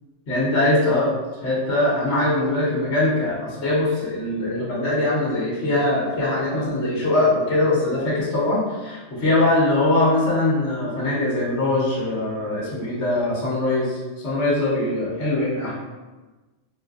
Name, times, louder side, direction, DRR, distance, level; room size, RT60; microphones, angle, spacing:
voice 1, 0.3-1.1 1.4-15.7, left 2 dB, 70° left, -7 dB, 1.4 m, -22 dB
4.8 x 2.4 x 2.4 m, 1.2 s
omnidirectional pair, 1.3 m